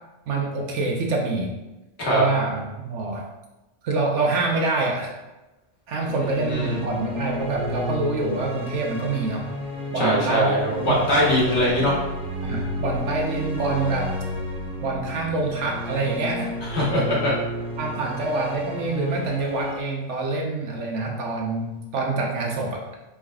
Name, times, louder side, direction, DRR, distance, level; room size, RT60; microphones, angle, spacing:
voice 1, 0.3-1.5 2.1-3.3 3.8-5.2 5.9-9.5 9.9-11.1 12.4-14.1 14.8-16.5 17.8-22.8, right 3 dB, 75° right, 0 dB, 1.1 m, -26 dB
sound 1, 6.0-19.8, left 1 dB, 5° right, 0.6 m, -32 dB
voice 2, 6.4-6.8 9.9-12.0 16.6-17.3, equal, 65° left, -4 dB, 1.4 m, -22 dB
4.6 x 3.4 x 2.3 m, 1.0 s
omnidirectional pair, 1.2 m